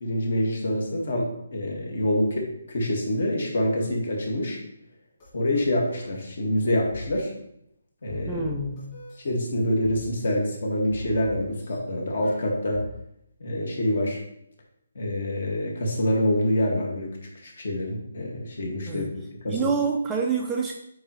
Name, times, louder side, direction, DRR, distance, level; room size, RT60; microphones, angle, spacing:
voice 1, 0.0-4.6 5.3-7.3 8.0-8.4 9.2-12.8 13.4-14.2 15.0-17.2 17.4-19.1 19.4-19.6, left 1 dB, 55° left, 0 dB, 2.0 m, -26 dB
sound 1, 5.2-5.3 5.5-6.1 6.9-7.1 8.1-9.3 9.8-10.3 10.9-11.8 12.2-12.9, left 1 dB, 25° left, 2.6 m, -40 dB
voice 2, 8.3-9.0 18.9-19.1 19.5-20.7, right 4 dB, 5° right, 0 dB, 0.4 m, -27 dB
8.9 x 4.6 x 3.1 m, 0.77 s
hypercardioid pair, 175°, 0 cm